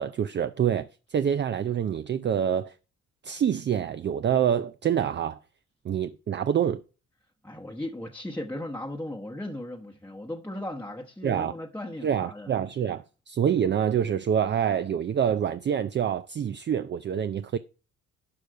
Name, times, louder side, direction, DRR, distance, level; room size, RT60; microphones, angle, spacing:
voice 1, 0.0-2.7 3.2-5.4 5.8-6.8 11.2-11.5 12.0-17.6, right 8 dB, 35° right, 0.5 m, -26 dB
voice 2, 7.4-12.5, left 1 dB, 5° left, 1.0 m, -37 dB
11.5 x 5.4 x 4.7 m
cardioid pair, 90°, 30 cm